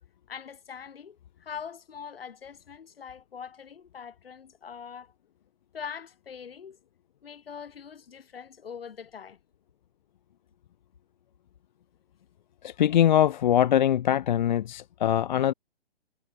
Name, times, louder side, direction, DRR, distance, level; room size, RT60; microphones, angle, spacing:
voice 1, 0.3-5.1 5.7-6.8 7.2-9.4, left 7 dB, 65° left, 3.3 m, -42 dB
voice 2, 12.6-15.5, left 10 dB, 45° left, 0.7 m, -22 dB
figure-of-eight pair, 130°, 32 cm